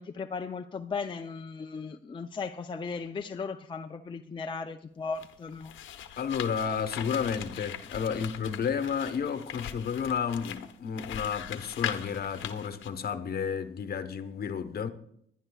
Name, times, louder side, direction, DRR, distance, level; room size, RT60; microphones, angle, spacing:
voice 1, 0.0-5.8, left 5 dB, 25° left, 0.5 m, -37 dB
sound 1, 5.1-12.9, left 10 dB, 70° left, 0.9 m, -40 dB
voice 2, 6.2-14.9, left 7 dB, 50° left, 1.1 m, -31 dB
22.5 x 11.0 x 2.4 m
cardioid pair, 90°, 20 cm